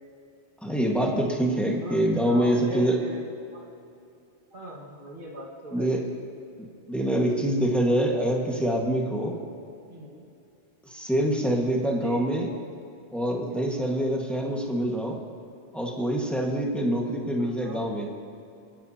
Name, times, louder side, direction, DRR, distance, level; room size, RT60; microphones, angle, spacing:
voice 1, 0.6-3.0 5.7-6.1 6.6-9.4 10.9-12.5 13.1-15.2 15.7-18.1, right 1 dB, ahead, -1 dB, 1.6 m, -25 dB
voice 2, 1.8-3.3 3.5-3.7 4.5-5.9 9.9-10.3 11.2-11.5 11.9-12.2 17.4-17.9, right 1 dB, 55° right, -3 dB, 2.0 m, -39 dB
28.0 x 10.5 x 2.9 m, 2.5 s
omnidirectional pair, 1.1 m